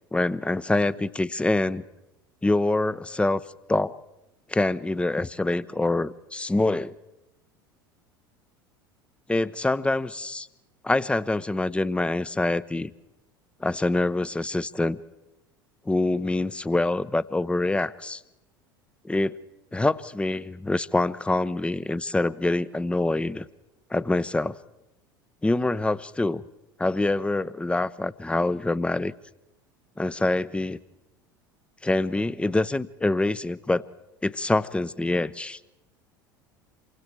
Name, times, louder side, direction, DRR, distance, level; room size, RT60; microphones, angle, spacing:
voice 1, 0.1-1.8 2.4-3.4 3.7-4.0 4.5-7.0 9.3-10.5 10.8-12.9 13.6-15.0 15.9-18.2 19.0-19.4 19.7-23.5 23.9-24.6 25.4-26.4 26.8-29.1 30.0-30.8 31.8-33.9 34.2-35.6, left 2 dB, 10° left, 17 dB, 0.8 m, -25 dB
28.0 x 24.0 x 4.7 m, 0.94 s
hypercardioid pair, 75°, 12 cm